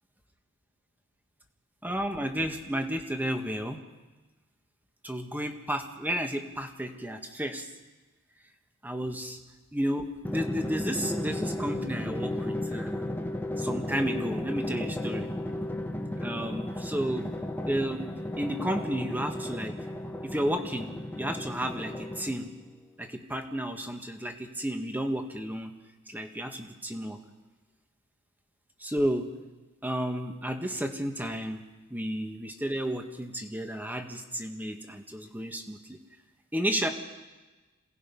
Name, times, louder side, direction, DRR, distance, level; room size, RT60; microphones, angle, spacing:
voice 1, 1.8-3.8 5.0-7.7 8.8-9.4 9.7-13.0 13.6-15.3 16.2-17.3 17.6-19.8 20.2-22.5 23.0-25.7 26.1-27.2 28.8-29.3 29.8-31.6 31.9-36.0 36.5-36.9, equal, 10° right, 5 dB, 1.7 m, -32 dB
Drum, 10.2-22.6, left 1 dB, 10° left, 1.3 m, -34 dB
27.5 x 18.5 x 5.5 m, 1.2 s
head